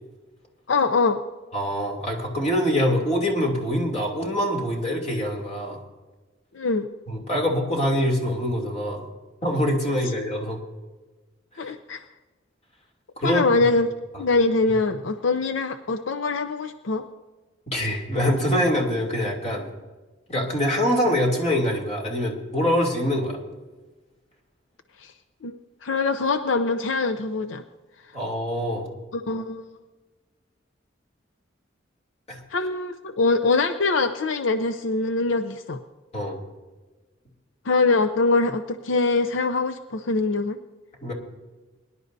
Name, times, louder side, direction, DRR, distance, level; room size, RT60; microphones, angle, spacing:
voice 1, 0.7-1.2 6.5-6.9 11.6-12.0 13.2-13.9 14.2-17.0 25.0-25.1 25.4-25.5 25.8-27.6 29.1-29.7 32.5-35.8 37.6-40.6, left 3 dB, 80° left, 8 dB, 0.6 m, -23 dB
voice 2, 1.5-5.8 7.1-9.0 9.4-10.6 11.6-11.7 13.2-13.4 17.7-19.7 20.3-23.4 28.1-28.9 32.3-32.4 36.1-36.4 41.0-41.1, equal, 35° left, 0 dB, 2.9 m, -24 dB
23.0 x 11.0 x 2.7 m, 1.2 s
head